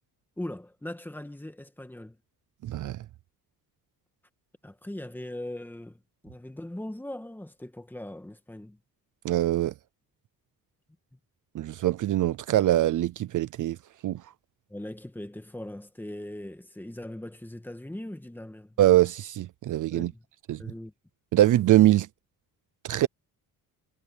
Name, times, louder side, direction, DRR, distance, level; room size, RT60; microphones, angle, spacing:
voice 1, 0.4-2.2 4.6-8.8 14.7-18.8 19.9-20.2 20.6-20.9, left 1 dB, 5° left, 1.6 m, -40 dB
voice 2, 2.6-3.0 9.2-9.7 11.5-13.8 14.0-14.2 18.8-20.1 20.5-20.6 21.3-22.1 22.8-23.1, right 14 dB, 55° right, 0.6 m, -23 dB
cardioid pair, 155°, 37 cm